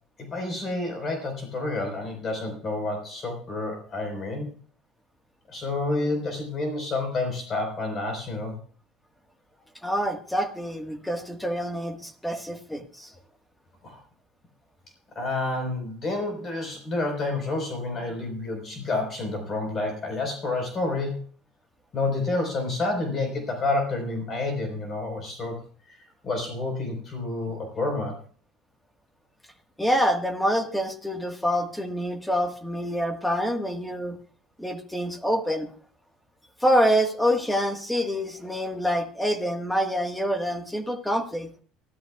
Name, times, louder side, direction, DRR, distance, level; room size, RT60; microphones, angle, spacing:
voice 1, 0.2-4.5 5.5-8.6 13.8-14.0 15.1-21.2 21.9-28.2, left 2 dB, 30° left, 4 dB, 4.3 m, -29 dB
voice 2, 9.8-13.1 29.8-34.2 34.6-35.7 36.6-41.5, equal, 5° left, 6 dB, 1.5 m, -26 dB
24.0 x 13.5 x 2.3 m, 0.42 s
cardioid pair, 160°, 0 cm